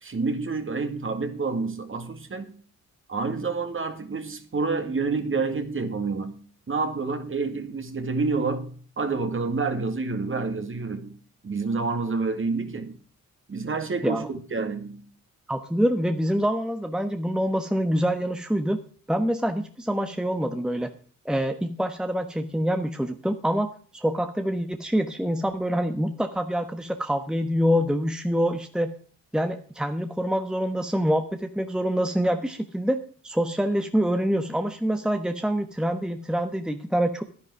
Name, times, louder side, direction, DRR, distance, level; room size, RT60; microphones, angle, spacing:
voice 1, 0.0-2.6 3.1-11.2 11.4-13.0 13.5-15.1, right 4 dB, 35° right, 2.2 m, -28 dB
voice 2, 15.5-18.8 19.1-20.9 21.2-28.9 29.3-37.2, equal, ahead, 1.1 m, -26 dB
10.5 x 10.5 x 4.7 m
cardioid pair, 70°, 34 cm